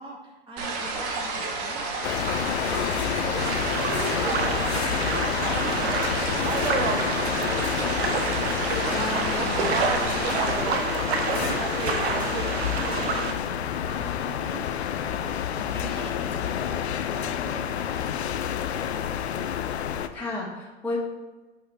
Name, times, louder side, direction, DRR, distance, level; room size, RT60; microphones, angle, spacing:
voice 1, 0.0-6.5 6.7-9.2 9.5-19.1, right 1 dB, 15° right, -3 dB, 2.5 m, -44 dB
sound 1, 0.6-10.6, right 3 dB, 45° right, 1.7 m, -32 dB
sound 2, 2.0-20.1, left 9 dB, 85° left, 0.6 m, -29 dB
sound 3, 3.4-13.3, right 4 dB, 75° right, 1.1 m, -28 dB
voice 2, 8.8-9.7 20.1-21.0, left 2 dB, 5° left, -7 dB, 2.0 m, -33 dB
8.6 x 5.7 x 3.3 m, 1.2 s
hypercardioid pair, 110°, 32 cm